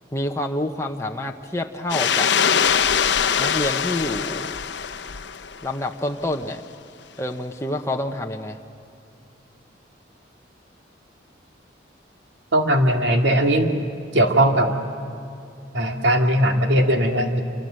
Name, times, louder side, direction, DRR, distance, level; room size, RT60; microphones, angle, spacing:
voice 1, 0.1-2.3 3.4-4.5 5.6-6.6 7.2-8.6, left 1 dB, 15° left, 3 dB, 0.9 m, -27 dB
sound 1, 1.9-5.7, left 7 dB, 70° left, 0.7 m, -22 dB
voice 2, 12.5-13.7 14.1-14.7 15.7-17.4, right 1 dB, 75° right, 4 dB, 2.3 m, -19 dB
27.5 x 24.5 x 7.7 m, 2.6 s
head